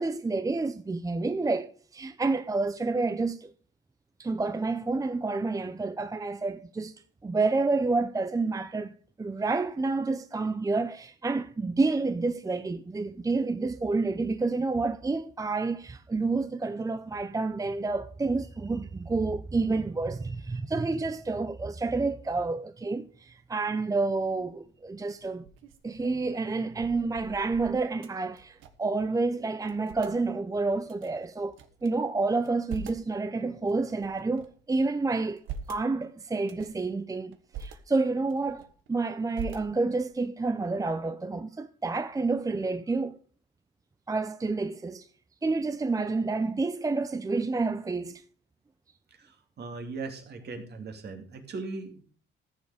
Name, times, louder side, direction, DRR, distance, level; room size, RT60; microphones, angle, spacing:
voice 1, 0.0-3.5 4.2-6.9 7.2-25.5 25.8-31.6 31.8-35.4 35.7-43.2 44.1-45.1 45.4-48.2, right 3 dB, 15° right, 0.6 m, -29 dB
sound 1, 24.3-24.7 25.2-29.0 29.2-29.3 29.6-30.2 30.9-31.9 32.3-33.1 33.7-34.6 35.1-35.9 36.4-36.8 37.3-37.8 38.2-38.9 39.3-40.1, right 6 dB, 85° right, 1.4 m, -43 dB
voice 2, 49.1-52.0, right 3 dB, 55° right, 2.6 m, -39 dB
14.0 x 7.1 x 4.9 m
cardioid pair, 90°, 20 cm